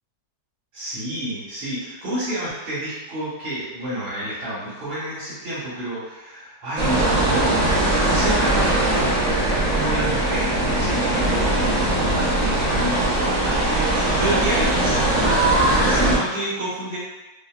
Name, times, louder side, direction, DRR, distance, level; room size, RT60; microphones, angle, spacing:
voice 1, 0.7-15.4 15.8-17.0, right 1 dB, 80° right, -12 dB, 2.2 m, -30 dB
sound 1, 6.8-16.2, right 1 dB, 35° right, 0.6 m, -20 dB
5.1 x 2.1 x 2.4 m, 1.1 s
omnidirectional pair, 2.0 m